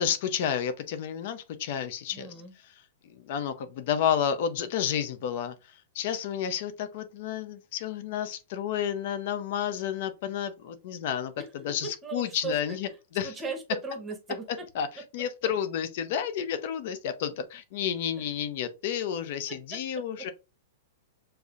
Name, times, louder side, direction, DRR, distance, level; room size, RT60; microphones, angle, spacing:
voice 1, 0.0-2.3 2.6-2.7 3.0-13.3 14.7-20.3, left 9 dB, 45° left, 0.6 m, -31 dB
voice 2, 2.1-2.5 11.4-11.8 12.0-12.8 13.2-14.6 18.2-18.3 19.5-20.3, right 4 dB, 10° right, 0.8 m, -38 dB
6.7 x 2.7 x 2.4 m
supercardioid pair, 165°, 0 cm